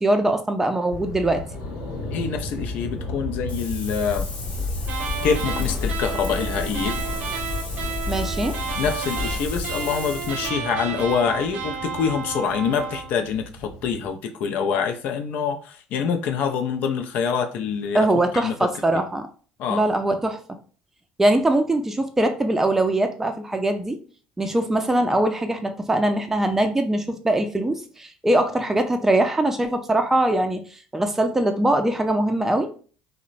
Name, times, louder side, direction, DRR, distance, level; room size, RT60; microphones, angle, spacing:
voice 1, 0.0-1.4 8.1-8.6 17.9-19.3 19.7-20.4 21.2-24.0 24.4-30.6 30.9-32.7, right 1 dB, 10° right, 0.4 m, -22 dB
sound 1, 0.9-14.1, left 1 dB, 90° left, 0.9 m, -36 dB
voice 2, 2.1-4.3 5.2-7.0 8.8-18.1 18.3-18.5 18.9-19.0 19.6-19.9, left 6 dB, 65° left, 0.4 m, -25 dB
Wind, 3.5-10.5, left 4 dB, 45° left, 0.8 m, -31 dB
sound 2, 4.9-13.1, right 6 dB, 65° right, 0.5 m, -32 dB
2.9 x 2.1 x 2.5 m
supercardioid pair, 80°, 3 cm